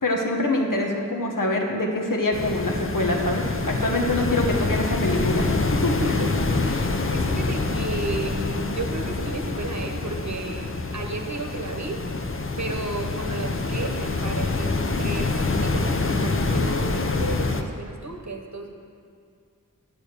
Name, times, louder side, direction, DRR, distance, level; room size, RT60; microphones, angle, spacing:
voice 1, 0.0-5.5 5.8-5.9, left 1 dB, 70° left, 0 dB, 1.3 m, -24 dB
sound 1, 2.3-17.6, left 3 dB, 40° left, 0.7 m, -26 dB
voice 2, 6.0-6.4 6.6-12.1 12.6-18.7, right 2 dB, 55° right, 3 dB, 1.0 m, -33 dB
8.4 x 6.6 x 6.6 m, 2.3 s
wide cardioid pair, 55°, 34 cm